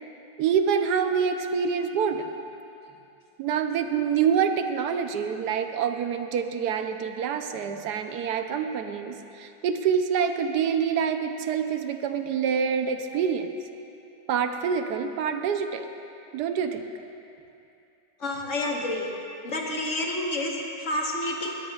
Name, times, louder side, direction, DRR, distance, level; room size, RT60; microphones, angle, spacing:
voice 1, 0.4-2.3 3.4-13.5 14.3-15.9 16.3-16.8, right 7 dB, 85° right, 7 dB, 1.3 m, -26 dB
voice 2, 18.2-19.1 19.4-21.5, left 1 dB, 50° left, -1 dB, 1.6 m, -29 dB
20.0 x 13.0 x 2.4 m, 2.7 s
omnidirectional pair, 1.7 m